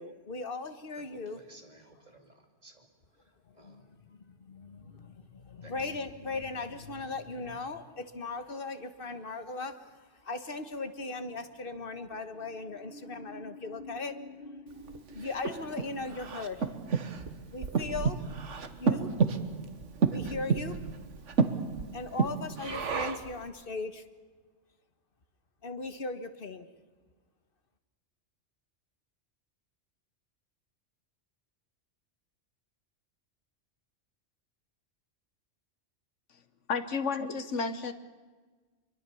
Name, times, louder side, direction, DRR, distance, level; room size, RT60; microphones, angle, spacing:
voice 1, 0.0-1.4 3.5-9.9 10.2-16.7 17.5-18.2 18.8-19.1 20.1-20.8 21.9-24.0 25.6-26.7, left 3 dB, 50° left, 9 dB, 1.5 m, -38 dB
voice 2, 1.1-2.9 3.2-3.9 5.6-5.9, right 2 dB, 35° right, 4 dB, 2.7 m, -56 dB
Breathing, 14.9-23.4, right 5 dB, 90° right, 1.6 m, -31 dB
voice 3, 36.7-37.9, left 5 dB, 90° left, 10 dB, 1.5 m, -31 dB
24.5 x 23.0 x 7.0 m, 1.4 s
omnidirectional pair, 1.2 m